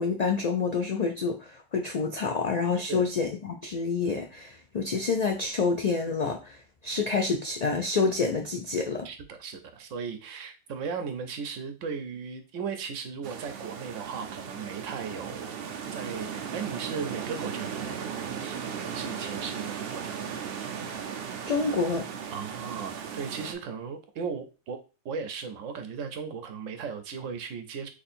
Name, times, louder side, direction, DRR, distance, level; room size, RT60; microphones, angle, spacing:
voice 1, 0.0-9.1 21.5-22.1, left 4 dB, 65° left, 3 dB, 0.4 m, -28 dB
voice 2, 2.8-3.1 9.0-15.6 15.9-18.1 18.4-18.6 18.9-20.4 22.3-27.9, right 6 dB, 85° right, 8 dB, 1.0 m, -37 dB
sound 1, 13.2-23.5, right 7 dB, 60° right, 0.7 m, -37 dB
3.1 x 2.6 x 4.2 m, 0.31 s
omnidirectional pair, 1.3 m